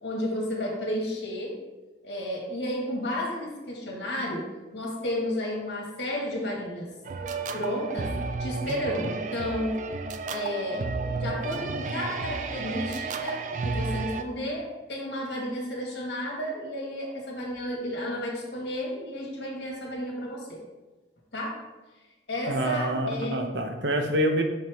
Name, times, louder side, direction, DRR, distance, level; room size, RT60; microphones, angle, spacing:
voice 1, 0.0-1.5 2.0-4.5 4.7-6.9 7.5-8.1 8.4-9.8 10.3-10.8 11.1-20.6 21.3-21.5 22.3-23.5, left 1 dB, 75° left, -2 dB, 1.7 m, -32 dB
sound 1, 7.0-14.2, right 4 dB, 45° right, 0.4 m, -32 dB
voice 2, 22.5-24.4, right 1 dB, 75° right, 5 dB, 0.8 m, -26 dB
5.8 x 5.5 x 3.4 m, 1.2 s
head